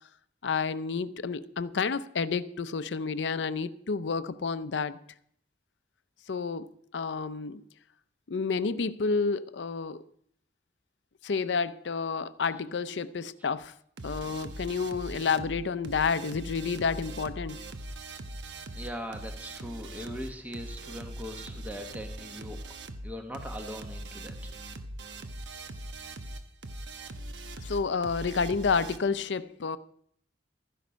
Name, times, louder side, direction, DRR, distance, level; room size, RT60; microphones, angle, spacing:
voice 1, 0.4-5.0 6.3-6.7 6.9-7.6 8.3-10.0 11.2-13.7 14.0-17.6 27.6-29.8, left 5 dB, 80° left, 0.6 m, -30 dB
sound 1, 14.0-29.0, right 1 dB, 80° right, 1.1 m, -41 dB
voice 2, 18.7-22.6 23.0-24.3, equal, 10° right, 1.0 m, -40 dB
13.0 x 10.5 x 5.1 m
head